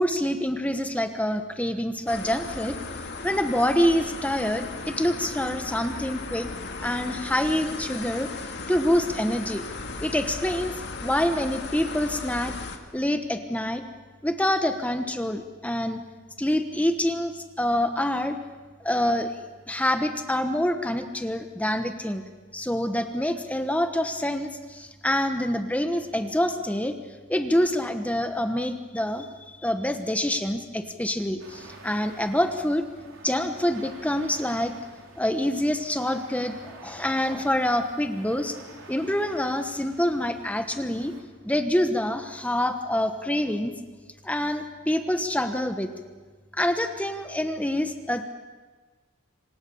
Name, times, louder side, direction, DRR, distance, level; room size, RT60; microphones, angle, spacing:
voice 1, 0.0-2.8 3.2-6.5 6.8-8.3 8.7-9.6 10.0-10.7 11.0-12.5 12.9-13.9 14.2-16.0 16.4-17.3 17.6-18.4 18.8-19.3 19.7-22.2 22.5-26.9 27.3-32.9 33.2-34.7 35.2-38.6 38.9-41.1 41.4-43.7 44.2-45.9 46.5-48.2, left 1 dB, 5° left, 7 dB, 1.2 m, -26 dB
sound 1, 2.1-12.8, left 3 dB, 55° left, 2.1 m, -36 dB
sound 2, 31.4-41.2, right 2 dB, 75° right, 4.6 m, -48 dB
27.0 x 26.0 x 7.1 m, 1.3 s
head